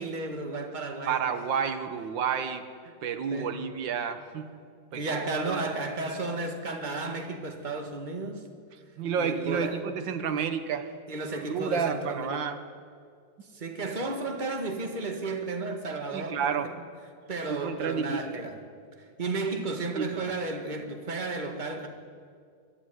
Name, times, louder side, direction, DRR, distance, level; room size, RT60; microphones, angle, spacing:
voice 1, 0.0-1.2 3.3-3.6 4.9-8.4 9.2-9.8 11.1-12.5 13.5-16.6 17.3-18.6 19.2-21.9, right 3 dB, 25° right, 1.8 m, -33 dB
voice 2, 1.1-2.7 3.0-4.6 4.9-5.1 5.5-5.7 9.0-10.9 11.4-12.6 16.1-16.7 17.5-18.5 20.0-20.2, right 7 dB, 85° right, 1.8 m, -30 dB
22.5 x 12.5 x 9.5 m
omnidirectional pair, 2.0 m